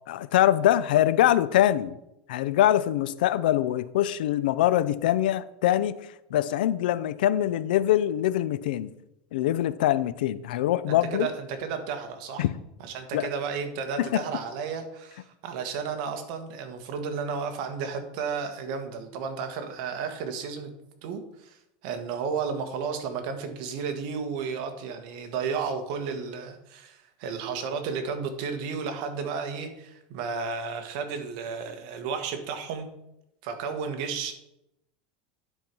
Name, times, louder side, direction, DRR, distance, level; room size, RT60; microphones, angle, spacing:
voice 1, 0.1-1.9 2.3-5.9 6.3-8.9 9.3-11.3 12.4-12.5 13.1-13.3 14.0-14.2, left 12 dB, 90° left, 16 dB, 0.5 m, -23 dB
voice 2, 10.9-12.4 12.8-20.7 21.0-32.9 33.4-34.3, right 5 dB, 60° right, 6 dB, 1.4 m, -33 dB
10.0 x 4.5 x 5.4 m, 0.85 s
supercardioid pair, 150°, 5 cm